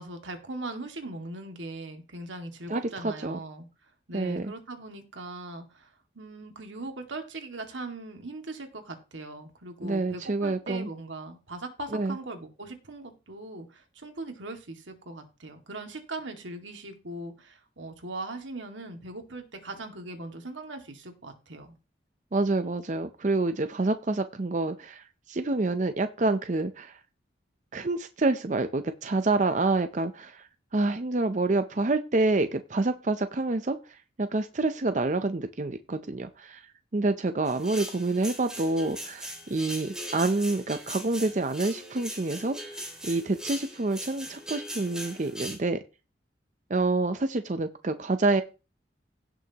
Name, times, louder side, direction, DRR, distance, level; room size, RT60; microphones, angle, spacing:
voice 1, 0.0-3.7 4.1-5.9 6.2-21.7, right 2 dB, 85° right, 5 dB, 2.1 m, -40 dB
voice 2, 2.7-3.4 4.1-4.5 9.8-10.9 11.9-12.2 22.3-27.0 27.7-36.7 36.9-45.8 46.7-48.4, right 2 dB, 40° right, 9 dB, 0.6 m, -28 dB
sound 1, 37.5-45.6, equal, 5° right, 2.4 m, -40 dB
17.0 x 6.4 x 2.9 m, 0.31 s
head